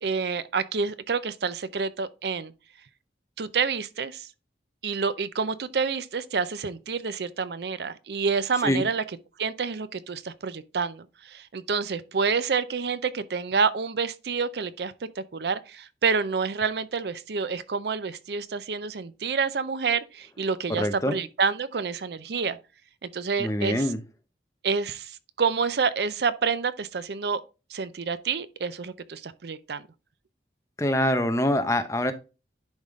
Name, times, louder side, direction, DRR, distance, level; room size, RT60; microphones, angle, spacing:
voice 1, 0.0-2.5 3.4-4.3 4.8-9.0 9.4-22.6 23.0-23.8 24.6-27.4 27.7-29.9, right 5 dB, 70° right, 0.5 m, -28 dB
voice 2, 20.7-21.2 23.4-24.0 30.8-32.1, left 1 dB, 15° left, 0.7 m, -24 dB
10.5 x 3.6 x 3.6 m
head